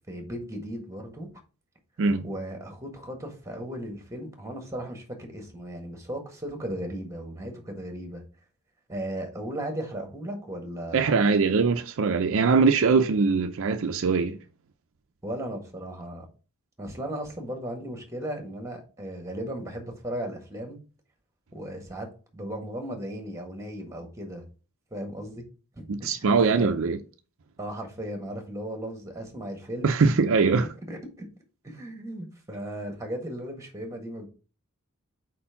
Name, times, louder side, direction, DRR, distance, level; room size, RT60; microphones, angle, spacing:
voice 1, 0.1-1.3 2.2-8.2 8.9-11.0 15.2-16.2 16.8-20.8 21.5-22.1 22.3-24.5 24.9-25.4 25.7-26.7 27.6-29.9 30.5-31.0 31.6-34.3, right 1 dB, 15° right, 1.6 m, -36 dB
voice 2, 2.0-2.3 10.9-14.4 25.9-27.0 29.8-30.7, right 4 dB, 65° right, 0.5 m, -22 dB
4.5 x 4.3 x 5.7 m
head